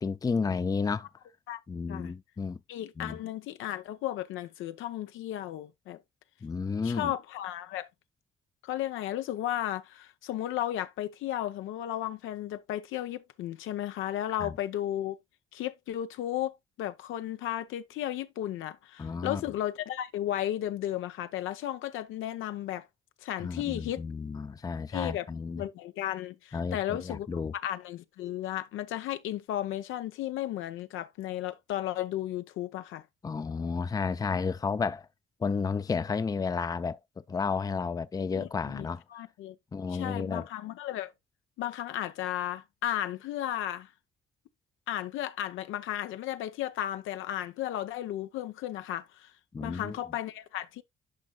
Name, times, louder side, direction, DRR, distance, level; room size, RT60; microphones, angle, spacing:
voice 1, 0.0-1.1 1.7-2.6 3.0-3.2 6.4-7.1 14.4-14.5 19.0-19.4 23.4-25.6 26.5-27.5 33.2-35.1 35.4-37.0 37.3-39.0 39.7-40.5 49.5-50.0, left 5 dB, 20° left, 0.4 m, -32 dB
voice 2, 2.7-6.0 6.8-7.9 8.6-15.2 15.5-22.9 23.2-24.1 24.9-25.3 25.6-27.3 27.5-33.1 38.3-39.6 39.9-41.1 41.6-43.9 44.9-49.4 49.6-50.8, left 12 dB, 85° left, 0.7 m, -34 dB
10.5 x 5.2 x 2.2 m
cardioid pair, 90°, 20 cm